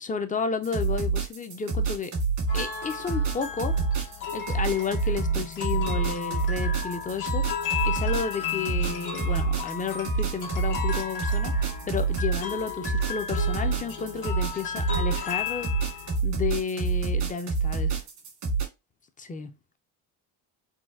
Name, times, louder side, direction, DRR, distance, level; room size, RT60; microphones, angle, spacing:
voice 1, 0.0-2.1 2.5-3.8 4.3-7.4 7.8-15.7 16.2-18.0 19.2-19.5, left 5 dB, 20° left, 0.4 m, -32 dB
sound 1, 0.6-18.6, right 4 dB, 85° right, 1.8 m, -27 dB
sound 2, 2.5-16.2, left 8 dB, 85° left, 1.2 m, -34 dB
4.0 x 2.2 x 2.4 m
supercardioid pair, 90°, 45 cm